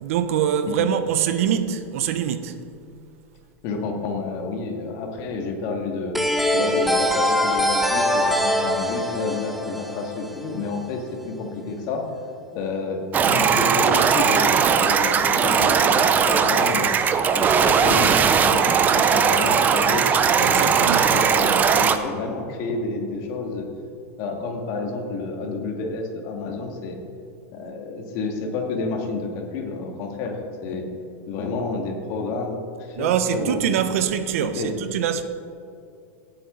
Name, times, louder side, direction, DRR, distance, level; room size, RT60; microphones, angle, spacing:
voice 1, 0.0-2.6 20.4-21.1 33.0-35.2, right 9 dB, 70° right, 10 dB, 1.0 m, -24 dB
voice 2, 3.6-6.2 6.5-12.0 12.5-17.0 17.4-20.7 21.1-23.7 24.2-27.0 27.5-30.9 31.3-33.8 34.4-34.7, left 3 dB, 45° left, 2 dB, 2.2 m, -30 dB
sound 1, 6.1-10.8, left 1 dB, ahead, 0.9 m, -23 dB
sound 2, 13.1-22.0, right 6 dB, 20° right, 0.6 m, -19 dB
17.0 x 9.1 x 4.0 m, 2.5 s
supercardioid pair, 145°, 8 cm